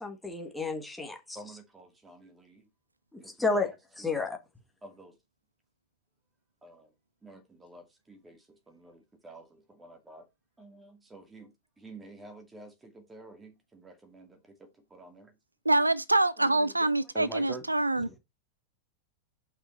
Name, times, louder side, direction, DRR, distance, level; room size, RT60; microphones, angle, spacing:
voice 1, 0.0-1.4 3.1-3.7 4.0-4.4, left 3 dB, 5° left, 1.8 m, -31 dB
voice 2, 1.3-2.7 3.2-4.2 4.8-5.1 6.6-6.9 7.2-10.3 10.6-15.3 16.4-17.6, right 2 dB, 10° right, 2.2 m, -49 dB
voice 3, 15.7-18.1, right 2 dB, 85° right, 0.4 m, -25 dB
7.1 x 5.6 x 4.3 m
figure-of-eight pair, 90°, 0 cm